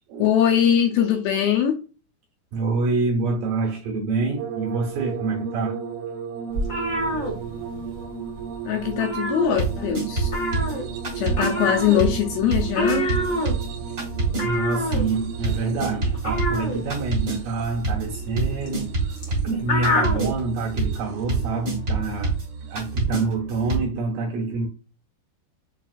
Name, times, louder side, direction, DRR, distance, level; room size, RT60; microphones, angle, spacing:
voice 1, 0.2-1.8 8.7-10.3 11.2-13.1, left 9 dB, 80° left, 2.3 m, -21 dB
voice 2, 2.5-5.8 14.4-22.4 22.6-24.7, right 3 dB, 70° right, 2.2 m, -27 dB
sound 1, 4.4-19.6 20.5-21.2 22.6-22.8, right 7 dB, 85° right, 2.2 m, -35 dB
sound 2, 6.5-8.0 8.3-8.5 8.8-9.9 10.2-20.3, equal, 60° left, 1.0 m, -27 dB
sound 3, 9.5-11.5 12.0-23.8, right 3 dB, 45° right, 1.1 m, -28 dB
6.7 x 2.3 x 2.4 m
omnidirectional pair, 4.7 m